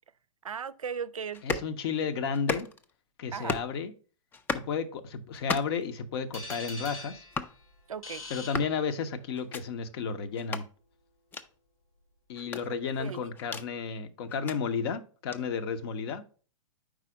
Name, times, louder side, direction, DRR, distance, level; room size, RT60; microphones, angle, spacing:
voice 1, 0.4-1.7 3.3-3.6 7.9-8.2 13.0-13.2, right 7 dB, 80° right, 0.4 m, -37 dB
sound 1, 1.3-1.7 2.3-2.9 3.3-3.7 4.3-4.7 5.3-5.8 6.3-6.7 7.3-7.5 8.3-8.8 9.3-9.6 10.3-10.7 11.3-11.5 12.3-13.7 14.3-14.6 15.3-15.4, left 5 dB, 10° left, 0.4 m, -35 dB
voice 2, 1.4-2.7 3.2-3.9 4.5-7.2 8.3-10.7 12.3-16.2, left 5 dB, 45° left, 0.8 m, -32 dB
sound 2, 6.3-9.3, left 2 dB, 90° left, 3.2 m, -44 dB
5.0 x 4.1 x 4.7 m
figure-of-eight pair, 115°, 17 cm